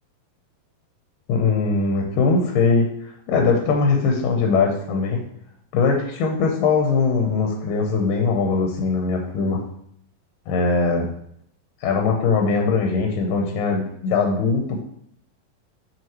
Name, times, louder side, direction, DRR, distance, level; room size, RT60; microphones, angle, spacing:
voice 1, 1.3-5.2 5.7-9.6 10.5-11.1 11.8-14.8, left 4 dB, 75° left, 2 dB, 2.2 m, -21 dB
7.6 x 5.4 x 3.0 m, 0.71 s
omnidirectional pair, 4.3 m